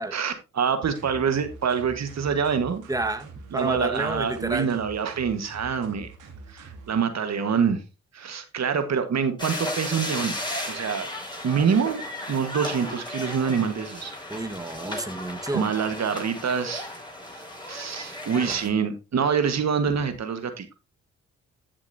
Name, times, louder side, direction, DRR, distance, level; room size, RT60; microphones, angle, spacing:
voice 1, 0.1-2.8 3.5-6.1 6.5-7.8 8.1-10.3 10.7-11.1 11.4-12.0 12.3-14.1 15.5-16.9 17.7-20.7, right 6 dB, 60° right, 1.6 m, -26 dB
sound 1, 0.9-6.9, right 3 dB, 90° right, 2.6 m, -44 dB
voice 2, 2.9-4.7 14.3-15.7 18.4-18.6, right 2 dB, 10° right, 1.6 m, -30 dB
sound 2, 9.4-18.7, left 1 dB, 15° left, 6.0 m, -35 dB
sound 3, 12.8-13.7 14.8-15.7, right 1 dB, 30° right, 4.0 m, -46 dB
13.5 x 6.9 x 2.7 m
supercardioid pair, 55°, 30 cm